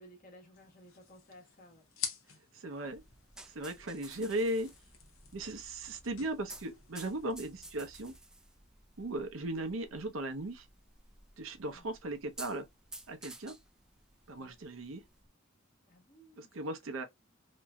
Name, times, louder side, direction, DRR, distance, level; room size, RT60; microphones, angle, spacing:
voice 1, 0.0-2.0 11.7-11.9 14.3-14.6 15.9-16.6 16.8-17.0, equal, 45° left, 1.2 m, -57 dB
sound 1, 0.5-8.2, left 8 dB, 75° left, 0.8 m, -48 dB
voice 2, 2.5-3.0 3.5-4.7 5.3-8.1 9.0-10.7 11.4-12.7 13.1-13.5 14.3-15.0 16.4-17.0, right 1 dB, 70° right, 0.7 m, -37 dB
sound 2, 2.9-15.3, right 2 dB, 5° right, 0.3 m, -54 dB
3.0 x 2.6 x 2.2 m
head